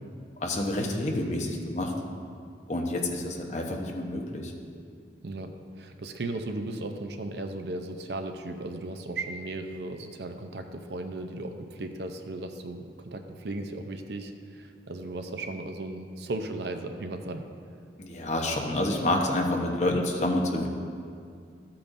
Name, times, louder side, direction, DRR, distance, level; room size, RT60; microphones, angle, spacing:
voice 1, 0.4-1.9 2.7-4.5 18.0-20.7, left 1 dB, 40° left, 1 dB, 1.0 m, -28 dB
voice 2, 5.2-17.5, right 2 dB, 65° right, 6 dB, 0.6 m, -36 dB
13.5 x 8.5 x 2.7 m, 2.3 s
head